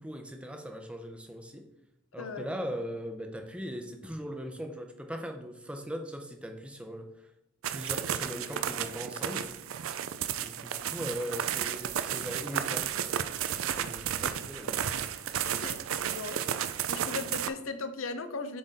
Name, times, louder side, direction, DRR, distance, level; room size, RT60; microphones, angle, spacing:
voice 1, 0.0-1.7 2.1-7.3 7.7-9.6 10.4-12.9 13.8-14.8, equal, 5° right, 5 dB, 0.6 m, -39 dB
sound 1, 7.6-17.5, right 9 dB, 85° right, 0.4 m, -33 dB
voice 2, 15.5-15.8 16.1-16.4 16.9-18.6, left 3 dB, 80° left, 9 dB, 0.7 m, -37 dB
7.6 x 3.8 x 4.0 m, 0.82 s
head